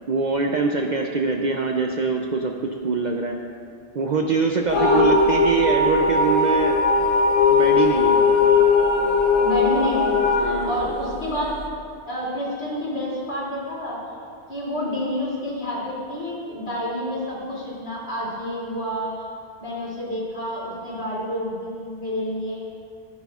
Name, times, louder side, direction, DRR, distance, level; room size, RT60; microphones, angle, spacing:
voice 1, 0.1-3.4 3.9-6.8 7.5-8.2 10.4-10.9, right 4 dB, 55° right, 2 dB, 0.5 m, -24 dB
sound 1, 4.7-11.6, left 4 dB, 85° left, 1.3 m, -19 dB
voice 2, 4.7-5.0 9.4-11.5 12.1-14.0 14.5-19.1 19.6-22.6, equal, 65° left, -7 dB, 3.0 m, -28 dB
15.0 x 8.5 x 2.4 m, 2.3 s
omnidirectional pair, 1.2 m